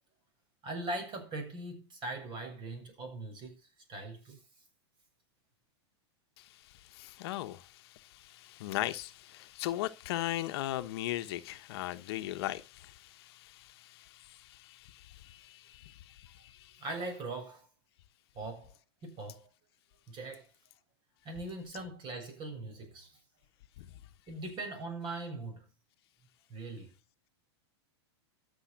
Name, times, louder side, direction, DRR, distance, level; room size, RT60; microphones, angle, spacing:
voice 1, 0.6-3.6 3.9-4.4 16.8-17.7 18.4-18.7 19.0-19.5 20.1-20.5 21.2-23.1 24.3-25.6 26.5-26.9, right 2 dB, 35° right, 7.5 m, -40 dB
voice 2, 6.4-16.8 23.8-23.9, left 15 dB, 60° left, 1.3 m, -39 dB
13.5 x 7.4 x 6.1 m
hypercardioid pair, 125°, 15 cm